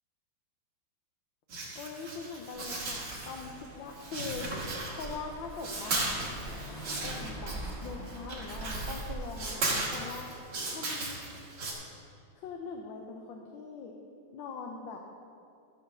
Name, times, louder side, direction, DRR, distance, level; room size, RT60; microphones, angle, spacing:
sound 1, 1.5-3.7 3.9-5.3 5.6-11.7, right 2 dB, 55° right, 2.4 m, -36 dB
voice 1, 1.7-4.5 4.9-6.3 7.0-10.3 10.7-11.2 12.4-13.9 14.3-15.0, left 5 dB, 75° left, 1 dB, 1.5 m, -42 dB
Car / Engine, 2.5-9.5, right 2 dB, ahead, 2.5 m, -43 dB
13.5 x 4.9 x 6.6 m, 2.4 s
omnidirectional pair, 2.2 m